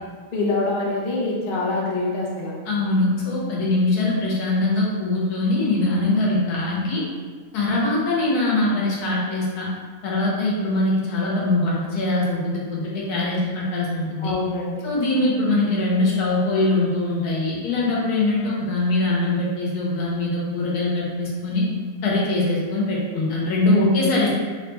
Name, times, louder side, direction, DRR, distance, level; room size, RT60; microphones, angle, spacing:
voice 1, 0.3-2.5 14.2-14.9, left 2 dB, 60° left, -3 dB, 0.5 m, -25 dB
voice 2, 2.7-7.0 7.5-9.7 10.0-14.3 14.8-21.6 22.0-24.3, left 2 dB, 85° left, -4 dB, 1.3 m, -22 dB
3.5 x 2.2 x 2.9 m, 1.5 s
omnidirectional pair, 1.6 m